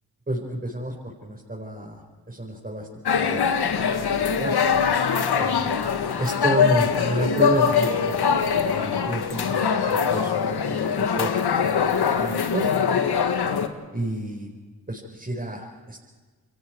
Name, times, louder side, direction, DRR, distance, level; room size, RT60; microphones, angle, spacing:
voice 1, 0.3-2.0 2.3-3.5 3.9-4.5 5.4-5.8 6.2-8.1 8.4-10.3 10.7-12.7 13.9-14.5 14.9-16.0, right 1 dB, 20° right, -1 dB, 5.0 m, -30 dB
sound 1, 3.1-13.7, left 6 dB, 70° left, 1.8 m, -22 dB
29.5 x 22.0 x 4.7 m, 1.4 s
supercardioid pair, 45°, 40 cm